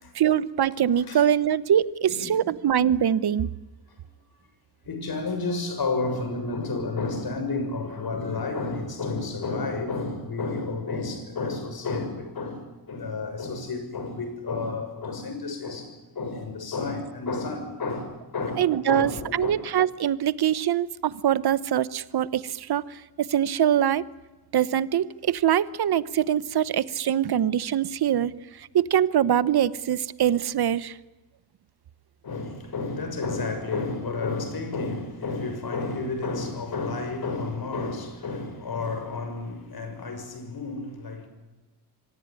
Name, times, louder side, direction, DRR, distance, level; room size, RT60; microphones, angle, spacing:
voice 1, 0.1-3.5 18.6-24.0 24.5-28.3 28.6-31.0, right 10 dB, 70° right, 1.0 m, -23 dB
voice 2, 2.1-2.4 4.8-19.5 32.2-41.3, left 3 dB, 65° left, 6.6 m, -31 dB
25.5 x 18.5 x 9.8 m
cardioid pair, 60°, 40 cm